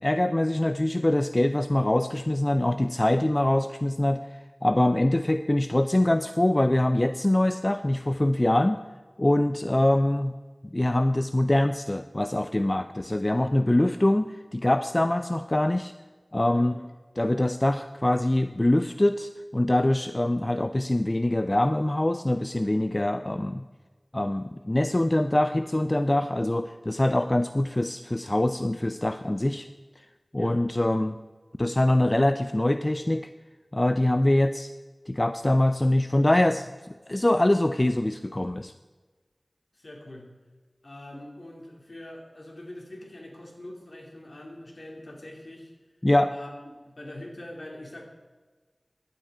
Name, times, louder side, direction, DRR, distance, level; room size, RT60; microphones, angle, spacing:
voice 1, 0.0-8.8 9.2-10.3 10.6-15.9 16.3-16.8 17.2-23.7 24.1-29.7 30.0-30.1 30.3-31.2 31.6-33.3 33.7-34.7 35.1-36.7 37.1-38.7 46.0-46.3, left 1 dB, 30° left, 9 dB, 0.4 m, -24 dB
voice 2, 16.5-16.9 30.4-30.6 39.7-40.3 40.8-45.7 46.3-48.0, left 1 dB, 65° left, 0 dB, 2.5 m, -43 dB
11.5 x 8.9 x 4.8 m, 1.3 s
wide cardioid pair, 50°, 0 cm